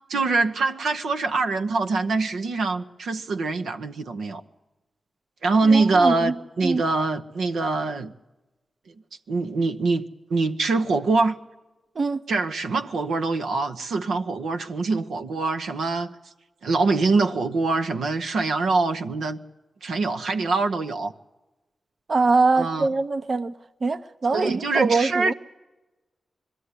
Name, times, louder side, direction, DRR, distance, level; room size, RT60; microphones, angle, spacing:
voice 1, 0.1-4.4 5.4-8.1 9.3-10.0 10.3-11.4 12.3-16.1 16.6-19.4 19.8-21.1 22.6-22.9 24.3-25.3, right 3 dB, 90° right, 0.9 m, -24 dB
voice 2, 5.7-6.3 6.6-6.8 12.0-12.2 22.1-23.5 23.8-25.3, right 3 dB, 55° right, 0.8 m, -23 dB
21.0 x 13.0 x 9.7 m
cardioid pair, 55°, 0 cm